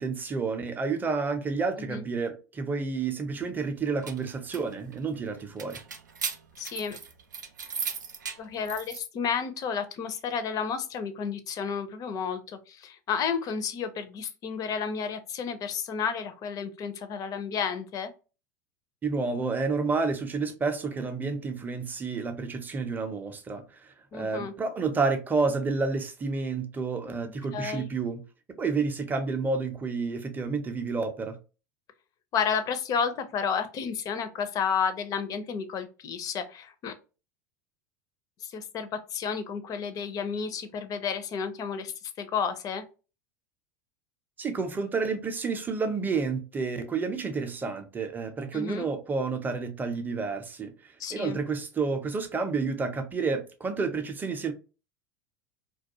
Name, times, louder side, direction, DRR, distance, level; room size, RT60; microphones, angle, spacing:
voice 1, 0.0-5.8 19.0-23.6 24.1-28.2 28.6-31.4 44.4-50.7 51.1-54.5, right 4 dB, 20° right, 0.5 m, -30 dB
sound 1, 3.7-9.0, right 6 dB, 90° right, 0.4 m, -38 dB
voice 2, 6.6-7.0 8.4-18.1 24.1-24.5 27.5-27.9 32.3-36.9 38.4-42.8 48.5-48.9 51.0-51.4, left 6 dB, 40° left, 0.5 m, -31 dB
2.3 x 2.3 x 2.7 m
hypercardioid pair, 85°, 10 cm